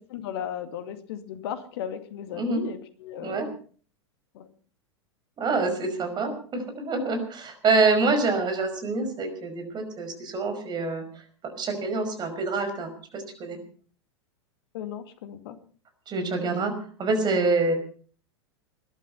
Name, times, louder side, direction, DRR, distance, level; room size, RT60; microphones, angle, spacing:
voice 1, 0.1-3.5 4.3-4.5 14.7-15.6, left 9 dB, 60° left, 10 dB, 2.2 m, -36 dB
voice 2, 5.4-11.0 11.4-13.6 16.1-16.7 17.0-17.7, right 3 dB, 30° right, 7 dB, 5.4 m, -26 dB
21.0 x 12.0 x 5.5 m, 0.43 s
figure-of-eight pair, 90°, 15 cm